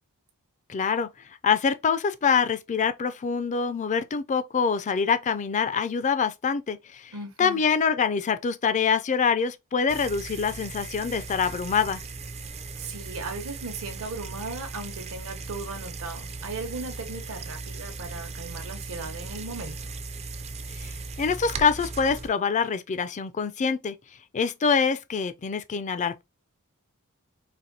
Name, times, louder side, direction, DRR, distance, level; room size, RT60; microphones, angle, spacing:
voice 1, 0.7-1.1 1.4-7.1 7.4-12.0 20.8-20.9 21.2-24.0 24.3-26.2, left 6 dB, 35° left, 0.4 m, -25 dB
voice 2, 7.1-7.6 12.7-19.9, right 3 dB, 65° right, 0.9 m, -37 dB
sound 1, 9.9-22.3, right 3 dB, 30° right, 0.4 m, -38 dB
4.1 x 2.6 x 2.7 m
head